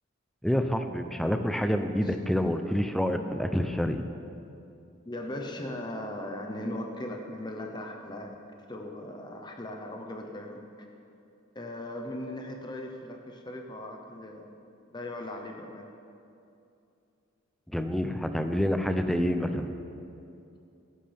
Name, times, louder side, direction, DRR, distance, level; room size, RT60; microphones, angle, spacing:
voice 1, 0.4-4.0 17.7-19.7, equal, ahead, 7 dB, 0.5 m, -27 dB
voice 2, 5.1-8.4 8.7-10.6 11.5-14.6 14.9-15.9, left 1 dB, 20° left, 2 dB, 0.9 m, -38 dB
17.0 x 11.0 x 3.5 m, 2.7 s
head